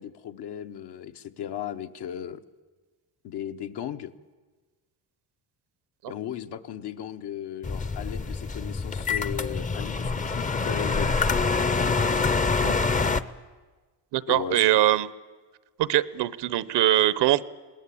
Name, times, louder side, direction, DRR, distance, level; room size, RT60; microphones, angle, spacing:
voice 1, 0.0-2.4 3.2-4.1 6.1-11.2 14.3-14.6, left 10 dB, 70° left, 8 dB, 1.1 m, -36 dB
sound 1, 7.6-13.2, left 4 dB, 20° left, 0.6 m, -26 dB
voice 2, 14.1-15.1 15.8-17.4, right 14 dB, 75° right, 18 dB, 0.9 m, -22 dB
21.0 x 18.5 x 8.5 m, 1.3 s
cardioid pair, 115°, 42 cm